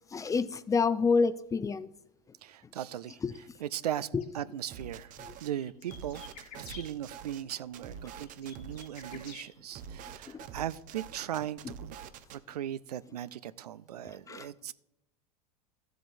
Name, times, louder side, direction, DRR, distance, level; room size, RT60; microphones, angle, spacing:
voice 1, 0.1-1.9 3.2-3.3 4.1-4.2 14.3-14.5, left 5 dB, 15° left, 0.5 m, -27 dB
voice 2, 2.4-4.1 4.3-5.1 5.4-6.2 6.6-12.0 12.3-14.7, right 11 dB, 80° right, 0.4 m, -38 dB
sound 1, 4.2-4.3 5.2-6.8 7.9-9.4, left 7 dB, 80° left, 3.2 m, -49 dB
sound 2, 4.7-5.5 5.9-9.3 9.7-12.4, right 7 dB, 40° right, 0.7 m, -46 dB
14.5 x 7.7 x 2.6 m
hypercardioid pair, 85°, 20 cm